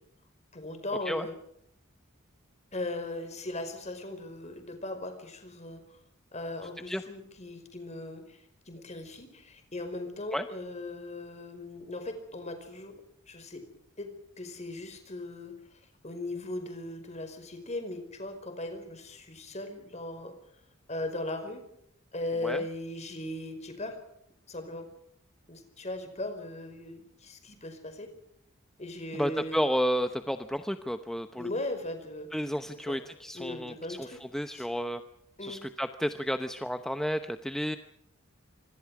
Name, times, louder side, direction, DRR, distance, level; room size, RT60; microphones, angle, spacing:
voice 1, 0.5-1.3 2.7-6.0 6.3-13.0 13.3-13.6 14.0-20.3 20.9-21.6 22.1-24.0 24.5-24.9 25.5-28.1 28.8-29.6 31.4-32.3 32.7-33.0 33.3-34.2 34.5-34.7 35.4-35.6, left 2 dB, 30° left, 7 dB, 5.1 m, -38 dB
voice 2, 29.1-31.5 32.3-34.1 34.3-35.0 35.4-37.8, equal, ahead, 8 dB, 0.8 m, -31 dB
26.0 x 25.0 x 4.9 m, 0.73 s
head